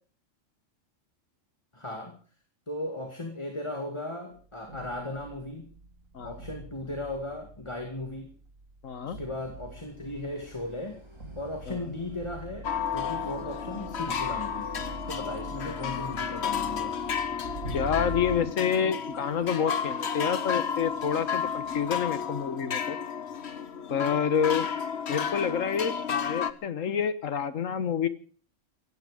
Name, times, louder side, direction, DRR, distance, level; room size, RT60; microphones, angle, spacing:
voice 1, 1.7-2.2 2.7-5.7 6.2-8.3 9.0-11.0 11.4-14.7 15.1-16.9, left 1 dB, 20° left, 3 dB, 2.3 m, -37 dB
sound 1, 4.3-18.4, right 1 dB, 85° right, 2.8 m, -43 dB
voice 2, 8.8-9.2 11.7-11.8 17.7-23.0 23.9-24.7 25.1-28.1, left 7 dB, 80° left, 13 dB, 1.6 m, -28 dB
sound 2, 9.4-22.5, equal, 20° right, 3.2 m, -56 dB
sound 3, 12.6-26.5, left 7 dB, 55° left, 1.3 m, -32 dB
17.0 x 16.5 x 5.0 m, 0.44 s
omnidirectional pair, 1.3 m